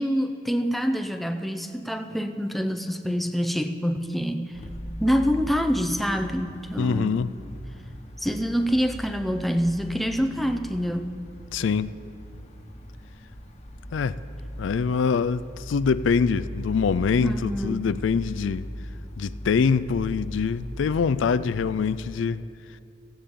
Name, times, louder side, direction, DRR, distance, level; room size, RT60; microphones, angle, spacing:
voice 1, 0.0-4.6 5.0-7.1 8.2-11.2 17.2-17.9, equal, ahead, 0.5 m, -26 dB
sound 1, 4.5-22.1, equal, 35° left, 1.1 m, -39 dB
voice 2, 6.8-7.3 11.5-11.9 13.9-14.2 14.6-18.6 19.2-22.4, left 5 dB, 85° left, 0.4 m, -24 dB
17.0 x 15.0 x 3.7 m
head